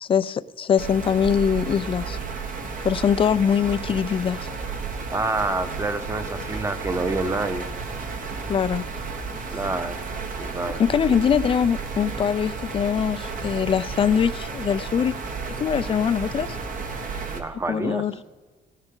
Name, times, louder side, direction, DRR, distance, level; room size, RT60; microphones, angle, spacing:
voice 1, 0.0-2.2 2.8-4.5 8.5-8.9 10.8-15.1 15.6-16.5 17.7-18.1, left 7 dB, 30° left, 16 dB, 0.4 m, -22 dB
sound 1, 0.8-17.4, right 4 dB, 55° right, 1.5 m, -32 dB
voice 2, 5.1-7.7 9.5-10.1 10.4-10.8 11.1-11.2 17.3-18.1, right 2 dB, 15° right, 10 dB, 1.0 m, -27 dB
16.5 x 9.8 x 3.8 m, 1.4 s
cardioid pair, 110°, 17 cm